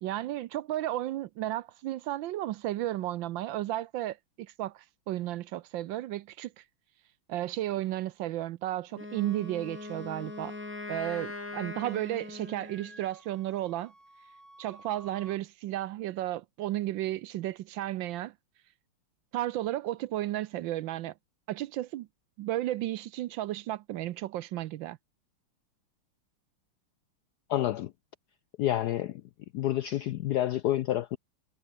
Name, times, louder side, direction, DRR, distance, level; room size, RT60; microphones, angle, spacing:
voice 1, 0.0-6.6 7.3-10.5 10.9-13.9 14.6-18.3 19.3-21.1 21.5-22.1 22.4-25.0, right 14 dB, 75° right, 1.2 m, -33 dB
Wind instrument woodwind instrument, 8.9-13.1, left 3 dB, 40° left, 4.8 m, -41 dB
Wind instrument woodwind instrument 2, 9.1-12.0 12.3-15.4, right 1 dB, 15° right, 4.6 m, -56 dB
voice 2, 27.5-27.9 28.6-29.2 29.5-31.2, left 13 dB, 75° left, 0.9 m, -29 dB
omnidirectional pair, 2.3 m